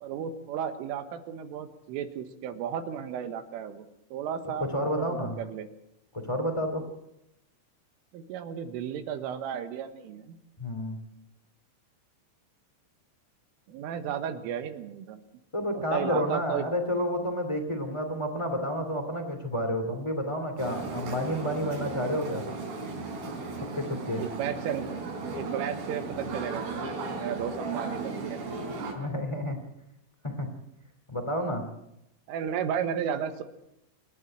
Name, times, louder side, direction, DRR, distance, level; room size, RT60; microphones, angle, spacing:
voice 1, 0.0-3.9 4.1-4.7 5.0-5.7 8.1-10.4 13.7-15.2 15.7-16.7 24.2-24.9 25.4-28.4 32.3-33.4, right 8 dB, 80° right, 9 dB, 4.0 m, -34 dB
voice 2, 4.6-5.3 6.2-6.8 10.6-11.0 15.5-22.4 23.7-24.3 28.9-29.6 30.2-30.5 31.1-31.6, equal, 20° left, 5 dB, 0.7 m, -30 dB
sound 1, 20.6-28.9, right 3 dB, 55° right, 5.8 m, -36 dB
28.0 x 11.0 x 9.1 m, 0.84 s
omnidirectional pair, 5.8 m